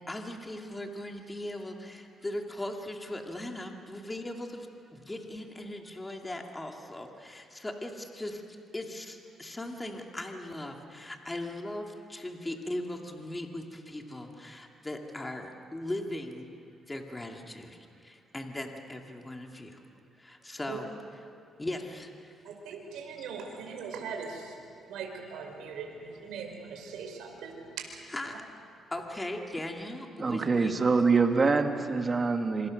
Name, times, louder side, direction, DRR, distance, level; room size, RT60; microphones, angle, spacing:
voice 1, 0.1-8.4 8.7-16.5 16.8-19.8 20.2-20.9 21.6-22.4 23.2-23.3 28.1-28.4 28.9-30.7, left 1 dB, 15° left, 2 dB, 2.6 m, -39 dB
voice 2, 22.4-28.4, right 5 dB, 85° right, 2 dB, 4.1 m, -41 dB
voice 3, 30.2-32.7, right 4 dB, 30° right, 5 dB, 2.1 m, -25 dB
26.5 x 25.0 x 6.6 m, 2.4 s
cardioid pair, 90°, 0 cm